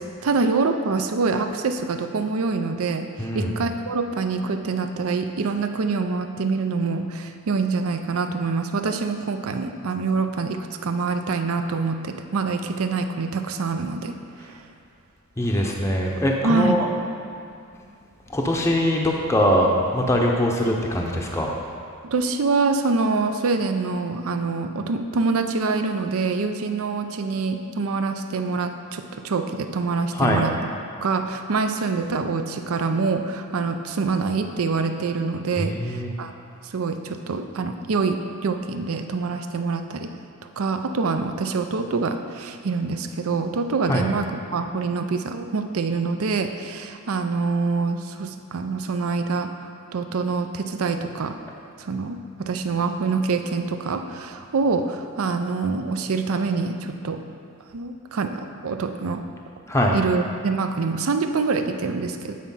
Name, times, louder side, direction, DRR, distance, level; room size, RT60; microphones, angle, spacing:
voice 1, 0.0-14.6 16.4-16.7 22.0-30.5 31.0-36.3 36.6-40.1 40.6-49.5 49.9-51.4 51.8-57.2 57.7-59.2 59.9-62.3, right 4 dB, 70° right, 7 dB, 0.5 m, -25 dB
voice 2, 3.2-3.5 15.4-16.9 18.3-21.5 30.1-30.4 35.6-36.1 43.8-44.1 59.7-60.0, equal, 10° left, -1 dB, 0.6 m, -22 dB
9.4 x 4.3 x 5.5 m, 2.5 s
head